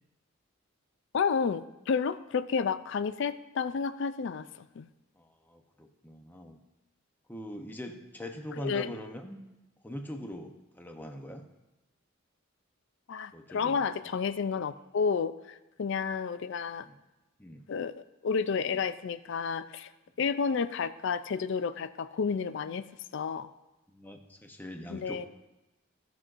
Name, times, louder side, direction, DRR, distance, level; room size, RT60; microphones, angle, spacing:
voice 1, 1.1-4.4 4.8-4.9 8.6-8.9 13.1-16.9 17.7-17.9 18.2-19.9 20.2-22.8 23.1-23.5 24.9-25.3, left 5 dB, 60° left, 13 dB, 0.4 m, -31 dB
voice 2, 5.2-6.6 7.3-9.4 9.8-11.4 13.3-13.8 16.8-16.9 17.4-17.6 23.9-25.3, equal, 10° left, 4 dB, 0.7 m, -42 dB
16.0 x 6.1 x 2.5 m, 1.0 s
head